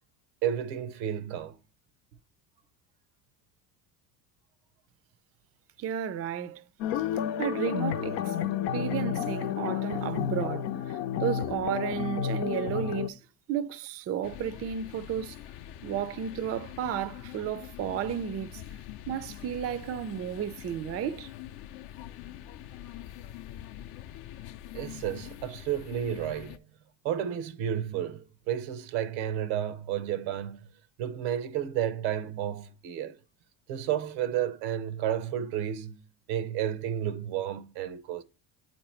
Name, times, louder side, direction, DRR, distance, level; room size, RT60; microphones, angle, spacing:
voice 1, 0.4-1.6 24.7-26.6 27.0-30.7 31.0-33.2 33.7-36.0 36.3-38.2, right 10 dB, 90° right, 0.8 m, -31 dB
voice 2, 5.8-6.6 6.9-7.1 7.4-8.3 8.7-13.2 13.5-15.4 15.8-18.6 19.1-21.3, right 9 dB, 30° right, 0.4 m, -33 dB
sound 1, 6.8-13.1, left 9 dB, 85° left, 0.7 m, -31 dB
sound 2, 14.2-26.6, left 12 dB, 50° left, 0.5 m, -44 dB
8.3 x 2.9 x 4.3 m
supercardioid pair, 90°, 49 cm